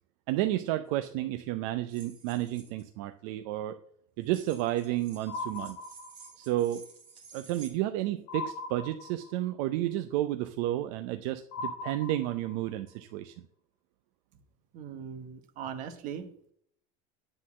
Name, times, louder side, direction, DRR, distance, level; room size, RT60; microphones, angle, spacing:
voice 1, 0.3-3.8 4.2-5.8 6.4-6.8 7.3-13.3, right 14 dB, 65° right, 9 dB, 0.5 m, -31 dB
sound 1, 0.9-1.1 1.9-2.8 4.2-7.7, right 5 dB, 25° right, 2.2 m, -53 dB
sound 2, 5.3-6.5 8.3-9.5 11.5-12.7, left 3 dB, 50° left, 1.1 m, -39 dB
voice 2, 14.7-16.2, right 8 dB, 40° right, 7 dB, 1.2 m, -39 dB
9.9 x 4.0 x 7.2 m, 0.66 s
cardioid pair, 165°, 20 cm